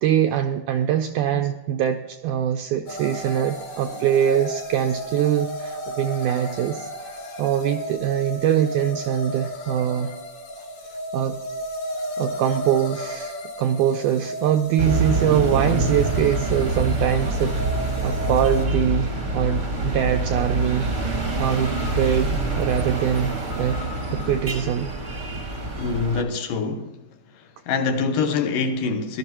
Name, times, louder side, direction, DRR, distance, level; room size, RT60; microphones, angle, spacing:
voice 1, 0.0-10.1 11.1-11.4 12.2-23.8 24.1-24.9, right 10 dB, 85° right, 1.8 m, -23 dB
sound 1, 2.9-18.7, equal, 40° left, 3.1 m, -33 dB
sound 2, 14.8-26.2, right 2 dB, 45° right, 0.9 m, -26 dB
voice 2, 25.8-27.0 27.3-29.2, left 4 dB, 75° left, 2.4 m, -25 dB
17.5 x 12.5 x 3.0 m
omnidirectional pair, 4.1 m